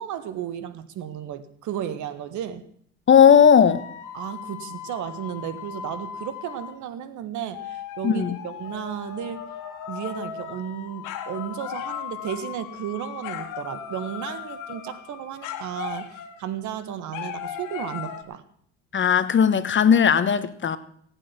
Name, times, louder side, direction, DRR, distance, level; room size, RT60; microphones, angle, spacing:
voice 1, 0.0-2.6 4.1-9.4 9.9-18.4, right 10 dB, 65° right, 1.6 m, -34 dB
voice 2, 3.1-3.8 8.0-8.4 18.9-20.8, left 7 dB, 35° left, 1.2 m, -17 dB
sound 1, 3.7-6.8 7.5-16.5 17.1-18.2, left 9 dB, 70° left, 2.0 m, -37 dB
17.5 x 8.9 x 6.0 m
supercardioid pair, 85°, 32 cm